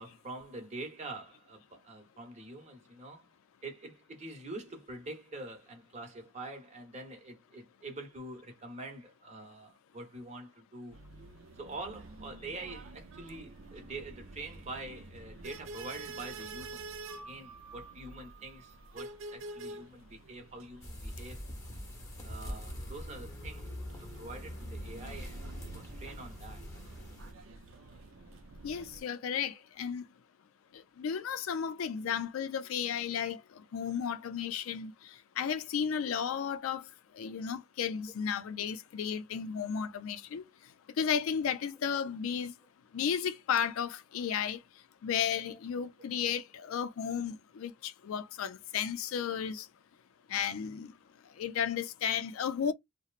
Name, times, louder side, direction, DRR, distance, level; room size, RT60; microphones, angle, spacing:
voice 1, 0.0-3.3 3.6-11.0 11.6-16.8 17.2-21.4 22.2-23.7 24.2-25.4 25.7-26.6 45.4-45.6 46.0-46.1 50.6-50.7, right 2 dB, 35° right, 0.9 m, -45 dB
sound 1, 10.9-29.0, right 2 dB, 70° right, 0.4 m, -48 dB
sound 2, 20.8-27.3, equal, 15° left, 0.8 m, -43 dB
voice 2, 28.6-30.0 30.7-33.4 33.7-36.8 37.2-40.4 41.0-42.5 42.9-44.6 45.0-49.7 50.3-50.9 51.4-52.7, left 7 dB, 85° left, 0.4 m, -33 dB
2.9 x 2.0 x 2.4 m
head